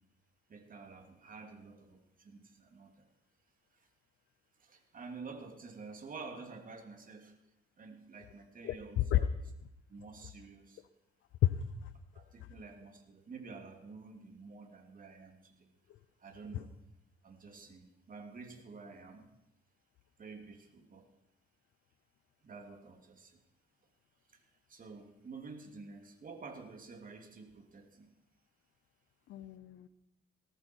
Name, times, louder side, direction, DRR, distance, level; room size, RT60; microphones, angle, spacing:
voice 1, 0.5-3.0 3.7-3.9 4.6-7.4 7.8-9.3 9.9-10.8 12.1-15.7 16.2-16.7 17.2-19.3 20.2-21.1 22.4-23.4 24.3-28.1, right 4 dB, 45° right, 4 dB, 2.9 m, -50 dB
voice 2, 11.4-11.9 16.5-16.6 29.3-29.9, left 12 dB, 75° left, 12 dB, 0.8 m, -31 dB
18.5 x 14.0 x 4.6 m, 0.86 s
cardioid pair, 90°, 20 cm